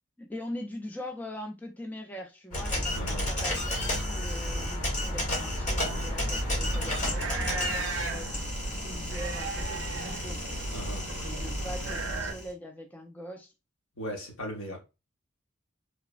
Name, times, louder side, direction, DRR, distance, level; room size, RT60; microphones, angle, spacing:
voice 1, 0.2-10.7 11.2-13.5, equal, 10° left, 0.3 m, -42 dB
sound 1, 2.5-12.5, left 1 dB, 35° left, 1.0 m, -32 dB
voice 2, 2.9-3.3 10.7-11.1 13.9-14.8, equal, 75° left, 0.9 m, -37 dB
sound 2, 5.8-12.3, right 3 dB, 70° right, 0.5 m, -36 dB
3.1 x 2.0 x 2.3 m
head